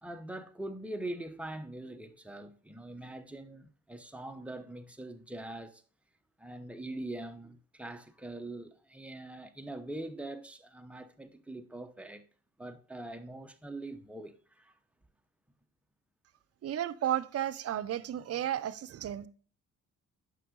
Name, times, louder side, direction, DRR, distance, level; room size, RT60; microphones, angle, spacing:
voice 1, 0.0-5.8 6.4-12.3 12.6-14.7, right 1 dB, 5° right, 0.8 m, -43 dB
voice 2, 16.6-19.3, right 11 dB, 55° right, 0.6 m, -33 dB
9.1 x 6.2 x 3.8 m
cardioid pair, 90°, 30 cm